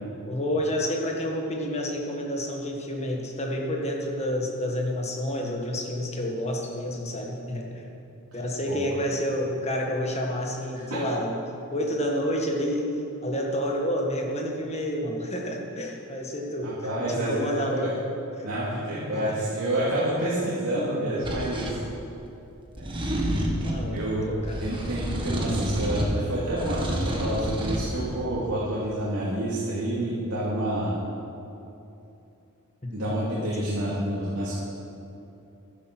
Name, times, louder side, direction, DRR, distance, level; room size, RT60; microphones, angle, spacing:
voice 1, 0.3-7.9 8.3-11.4 11.7-12.9 13.2-16.7 17.1-17.9 18.4-18.5 19.1-19.4 23.6-24.6 32.8-33.7, equal, 30° left, 0 dB, 1.7 m, -29 dB
voice 2, 16.6-17.9 18.4-21.7 22.8-22.9 23.9-24.3 24.6-30.9 32.9-34.6, right 1 dB, 90° right, -9 dB, 2.5 m, -28 dB
sound 1, 21.2-21.8 22.8-23.9 24.4-26.2 26.5-27.8, equal, 25° right, 1.6 m, -29 dB
11.5 x 10.5 x 6.2 m, 2.9 s
head